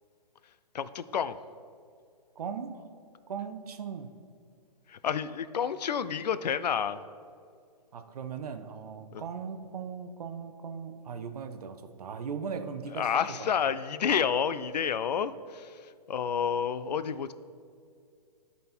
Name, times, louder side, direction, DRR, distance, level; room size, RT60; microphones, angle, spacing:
voice 1, 0.7-1.4 4.9-7.0 9.1-9.2 13.0-17.3, left 7 dB, 75° left, 14 dB, 0.5 m, -30 dB
voice 2, 2.4-2.8 3.3-4.1 7.9-13.5, right 6 dB, 65° right, 9 dB, 0.7 m, -38 dB
12.0 x 4.2 x 4.4 m, 2.2 s
hypercardioid pair, 130°, 21 cm